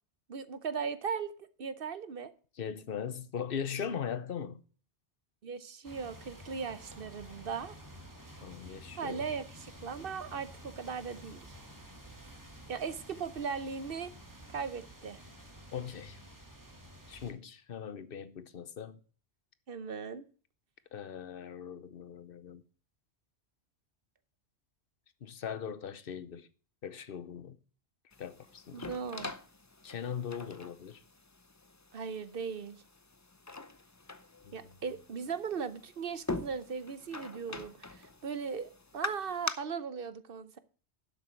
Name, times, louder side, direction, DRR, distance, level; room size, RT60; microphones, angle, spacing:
voice 1, 0.3-2.3 5.4-7.7 9.0-11.6 12.7-14.1 14.5-15.2 19.7-20.3 28.7-29.3 31.9-32.8 34.5-40.6, right 6 dB, 55° right, 1.0 m, -38 dB
voice 2, 2.6-4.6 8.4-9.4 15.7-16.2 17.1-19.0 20.9-22.6 25.2-26.5 26.8-27.6 28.2-28.9 29.8-31.0 34.5-34.6, left 7 dB, 55° left, 1.0 m, -40 dB
sound 1, 5.8-17.3, equal, 15° right, 2.0 m, -51 dB
sound 2, 28.1-39.5, left 3 dB, 20° left, 0.6 m, -44 dB
11.5 x 7.6 x 4.4 m
omnidirectional pair, 1.2 m